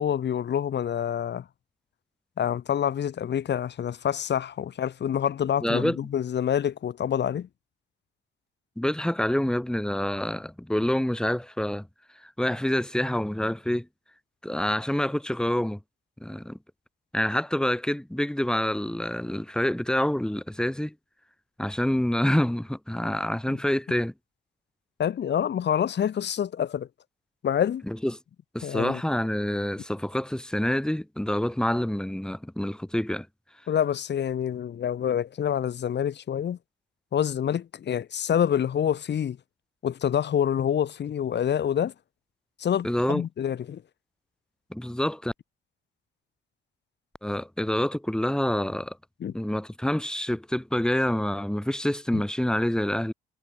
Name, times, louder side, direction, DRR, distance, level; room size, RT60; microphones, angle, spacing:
voice 1, 0.0-1.4 2.4-7.5 25.0-26.9 27.4-27.8 28.6-29.0 33.7-36.6 37.1-39.4 39.8-41.9 42.6-43.8 49.2-49.3 52.1-52.2, left 9 dB, 60° left, 6.1 m, -27 dB
voice 2, 5.6-6.0 8.8-11.9 12.2-13.9 14.4-15.8 16.2-16.6 17.1-20.9 21.6-24.1 27.9-28.2 28.5-33.3 42.8-43.2 44.7-45.3 47.2-49.0 49.3-53.1, left 1 dB, 5° left, 2.5 m, -27 dB
cardioid pair, 90°, 20 cm